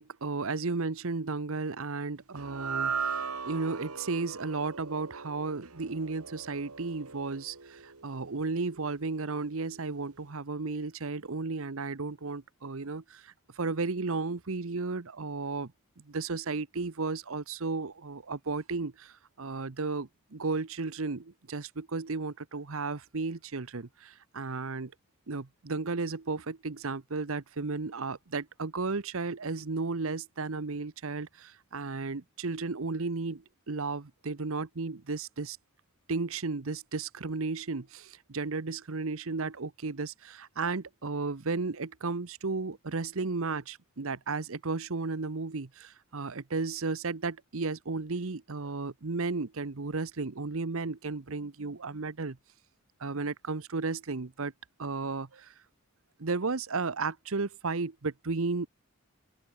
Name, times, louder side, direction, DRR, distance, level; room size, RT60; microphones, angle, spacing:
voice 1, 0.0-15.7 16.1-24.9 25.3-35.6 36.1-52.4 53.0-54.5 54.8-55.5 56.2-58.7, right 3 dB, 65° right, 0.9 m, -34 dB
sound 1, 2.4-8.8, right 5 dB, 80° right, 2.9 m, -38 dB
open air
head